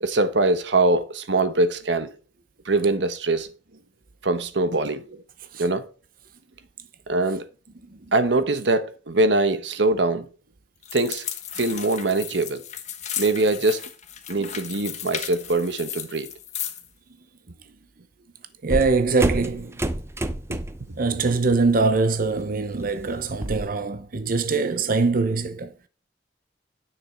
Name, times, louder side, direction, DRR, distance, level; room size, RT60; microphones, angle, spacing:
voice 1, 0.0-2.1 2.7-3.5 4.2-5.2 5.6-5.9 7.1-7.4 8.1-10.3 10.9-11.2 11.6-12.6 13.2-13.8 14.3-16.3 20.5-20.6, right 2 dB, 90° right, 1.1 m, -22 dB
sound 1, 10.8-16.9, left 9 dB, 40° left, 1.5 m, -35 dB
voice 2, 18.6-19.8 21.0-25.7, right 4 dB, 55° right, 0.8 m, -23 dB
sound 2, 18.7-20.9 21.3-21.6 22.0-23.7, right 1 dB, 15° right, 0.7 m, -28 dB
10.0 x 6.0 x 4.4 m
head